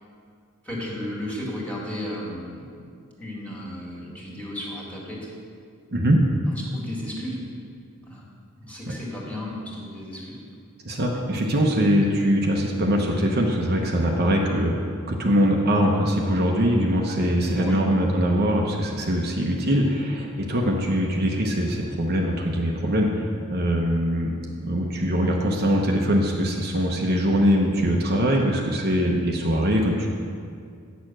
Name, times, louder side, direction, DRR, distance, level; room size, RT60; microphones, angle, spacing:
voice 1, 0.6-2.7 3.2-5.3 6.5-7.4 8.0-8.2 8.6-10.4 17.5-17.8, left 1 dB, 5° left, -5 dB, 2.0 m, -34 dB
voice 2, 5.9-6.2 10.8-24.3 24.6-30.1, equal, 45° right, 0 dB, 0.9 m, -22 dB
9.2 x 6.6 x 6.2 m, 2.3 s
head